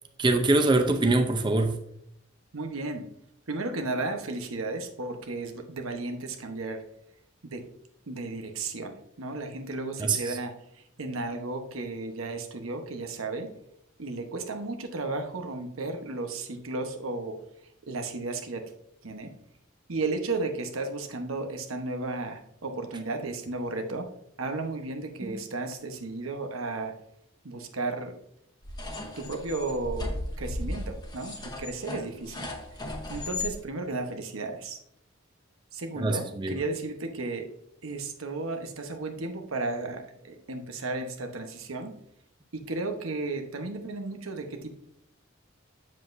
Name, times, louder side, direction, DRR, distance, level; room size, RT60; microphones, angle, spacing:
voice 1, 0.2-1.7 10.0-10.3 25.2-25.3 36.0-36.6, right 2 dB, 25° right, 5 dB, 0.6 m, -24 dB
voice 2, 2.5-3.1 3.5-6.8 7.4-7.6 8.1-13.5 14.0-17.4 17.9-18.7 19.0-19.3 19.9-24.1 24.4-27.0 27.4-28.1 29.2-32.5 33.1-34.8 35.7-37.5 37.8-42.0 42.5-44.7, right 3 dB, 90° right, 5 dB, 1.0 m, -34 dB
sound 1, 28.6-33.5, left 2 dB, 20° left, 0.9 m, -36 dB
7.7 x 7.4 x 2.6 m, 0.73 s
head